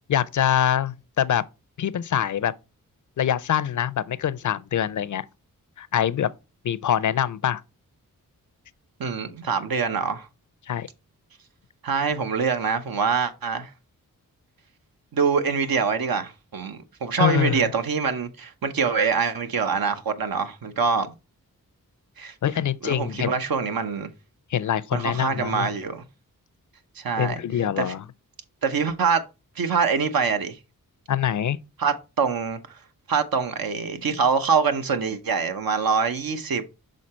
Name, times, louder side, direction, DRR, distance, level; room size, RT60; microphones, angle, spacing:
voice 1, 0.1-1.4 1.8-2.5 3.2-5.3 5.8-6.3 6.6-7.6 10.7-10.9 17.2-17.7 22.4-23.3 24.5-25.7 27.2-28.0 31.1-31.6, left 10 dB, 60° left, 0.5 m, -24 dB
voice 2, 9.0-10.3 11.8-13.7 15.1-21.1 22.2-22.3 22.8-24.1 24.9-26.0 27.0-27.4 27.8-27.9 28.6-29.2 29.6-30.6 31.8-32.6 33.1-36.6, right 5 dB, 75° right, 0.9 m, -24 dB
6.3 x 3.8 x 4.2 m
cardioid pair, 60°, 35 cm